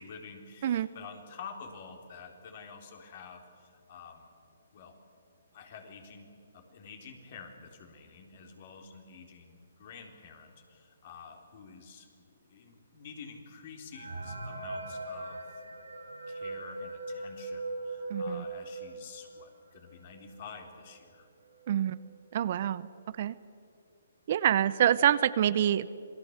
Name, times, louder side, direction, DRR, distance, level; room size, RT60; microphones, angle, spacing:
voice 1, 0.0-4.3 4.7-5.0 5.5-21.3, left 5 dB, 45° left, 4 dB, 3.9 m, -49 dB
sound 1, 13.9-19.4 19.8-19.9 20.1-20.3 21.0-21.1 21.5-21.8, right 2 dB, 85° right, 6.4 m, -39 dB
voice 2, 18.1-18.4 21.7-22.0 22.3-22.9 23.2-23.4 24.3-25.9, right 10 dB, 45° right, 16 dB, 0.7 m, -26 dB
26.5 x 19.0 x 8.1 m, 2.5 s
hypercardioid pair, 145°, 0 cm